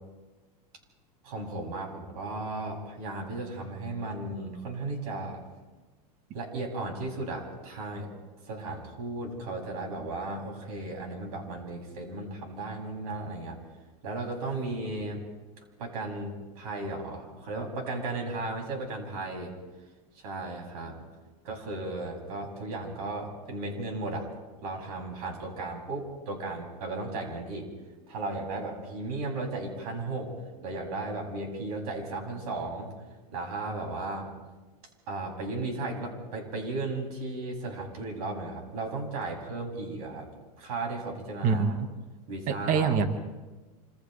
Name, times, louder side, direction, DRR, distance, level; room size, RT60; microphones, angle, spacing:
voice 1, 1.2-5.4 6.3-8.1 8.5-13.6 14.0-15.2 15.8-19.5 20.1-21.1 21.4-24.3 24.6-27.7 28.1-30.3 30.6-32.9 33.3-34.3 35.1-40.3 40.6-41.8 42.3-43.0, right 2 dB, 70° right, 1 dB, 7.6 m, -35 dB
voice 2, 41.4-41.9 42.5-43.0, right 6 dB, 40° right, 7 dB, 1.9 m, -25 dB
28.0 x 27.5 x 3.4 m, 1.2 s
supercardioid pair, 135°, 20 cm